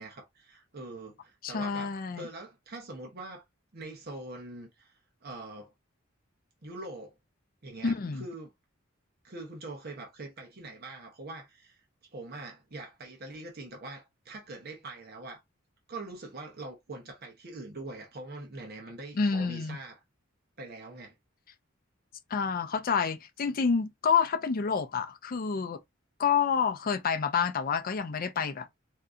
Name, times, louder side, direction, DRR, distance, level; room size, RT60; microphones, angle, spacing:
voice 1, 0.0-3.4 3.7-5.7 6.6-7.1 7.6-8.5 9.2-11.8 12.1-15.4 15.9-20.0 20.6-21.2, right 2 dB, 50° right, 0.8 m, -43 dB
voice 2, 1.4-2.3 7.8-8.2 19.2-19.8 22.3-25.8 26.2-28.7, left 6 dB, 45° left, 0.4 m, -28 dB
3.6 x 2.7 x 2.4 m
head